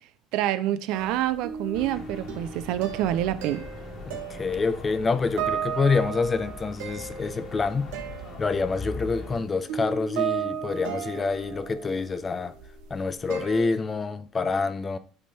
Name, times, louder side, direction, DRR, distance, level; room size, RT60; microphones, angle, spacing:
voice 1, 0.3-3.6, right 12 dB, 70° right, 0.5 m, -27 dB
sound 1, 0.9-13.6, right 8 dB, 90° right, 1.1 m, -35 dB
sound 2, 1.7-9.4, left 3 dB, 35° left, 1.4 m, -41 dB
voice 2, 4.1-7.9 8.4-12.5 12.9-15.0, left 4 dB, 20° left, 0.4 m, -27 dB
8.6 x 3.4 x 4.2 m
cardioid pair, 155°, 0 cm